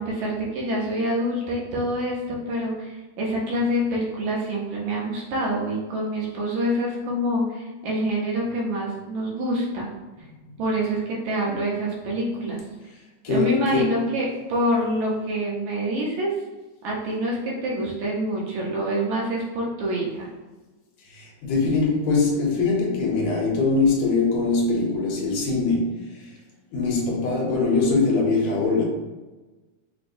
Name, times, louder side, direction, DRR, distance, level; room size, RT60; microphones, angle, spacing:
voice 1, 0.0-9.9 10.6-12.6 13.3-16.4 16.8-20.3, right 1 dB, 75° right, 2.0 m, -26 dB
voice 2, 13.2-14.0 21.0-26.4 26.7-28.8, left 3 dB, 70° left, 1.9 m, -22 dB
5.9 x 2.1 x 2.6 m
omnidirectional pair, 3.6 m